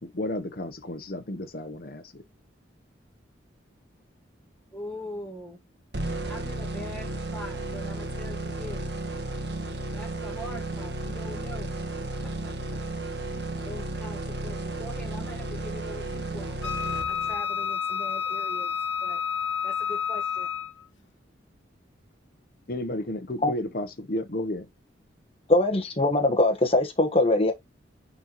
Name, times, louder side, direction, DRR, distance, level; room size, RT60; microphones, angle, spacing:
voice 1, 0.0-2.2 22.7-24.6, left 1 dB, 50° left, 0.9 m, -32 dB
voice 2, 4.7-5.6 6.2-8.8 9.9-11.8 12.2-12.5 13.6-16.7 17.1-18.7 19.0-19.2 19.6-20.5, equal, 5° left, 1.5 m, -42 dB
sound 1, 5.9-17.6, right 2 dB, 55° right, 1.4 m, -33 dB
Wind instrument woodwind instrument, 16.6-20.8, left 7 dB, 75° left, 1.4 m, -30 dB
voice 3, 25.5-27.5, left 2 dB, 30° left, 1.2 m, -22 dB
9.8 x 4.0 x 3.0 m
head